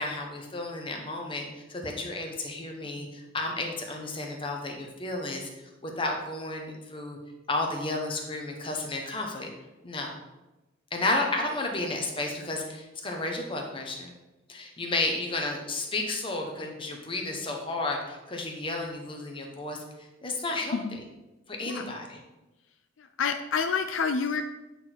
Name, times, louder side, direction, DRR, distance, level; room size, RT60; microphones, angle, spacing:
voice 1, 0.0-1.4 1.7-5.5 5.8-7.2 7.5-9.5 9.8-10.1 10.9-14.1 14.5-19.8 20.2-21.0 21.5-22.2, left 2 dB, 25° left, 1 dB, 1.1 m, -32 dB
voice 2, 21.6-21.9 23.0-24.4, left 5 dB, 75° left, 7 dB, 0.5 m, -28 dB
8.6 x 4.1 x 4.5 m, 1.0 s
head